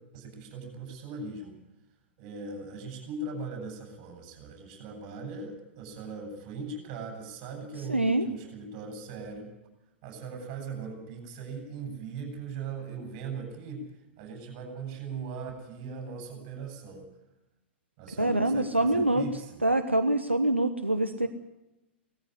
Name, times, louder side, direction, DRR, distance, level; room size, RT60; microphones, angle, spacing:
voice 1, 0.1-1.5 2.2-9.5 10.0-13.9 14.2-17.0 18.0-19.6, right 4 dB, 40° right, 3 dB, 7.9 m, -39 dB
voice 2, 7.9-8.3 18.2-19.3 19.6-21.3, right 1 dB, 90° right, 8 dB, 1.2 m, -25 dB
19.0 x 14.5 x 10.0 m, 0.97 s
figure-of-eight pair, 100°, 6 cm